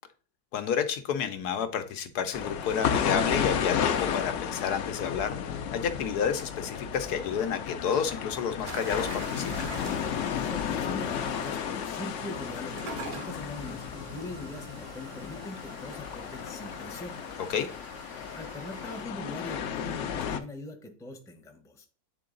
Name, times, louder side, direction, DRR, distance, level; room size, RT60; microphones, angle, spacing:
voice 1, 0.5-9.7 17.5-17.7, left 7 dB, 80° left, 1.3 m, -30 dB
sound 1, 2.3-20.4, left 8 dB, 60° left, 0.8 m, -33 dB
sound 2, 8.7-19.1, right 4 dB, 70° right, 1.6 m, -45 dB
voice 2, 10.3-17.2 18.3-21.9, left 2 dB, 5° left, 0.7 m, -42 dB
8.4 x 3.8 x 3.8 m
omnidirectional pair, 1.7 m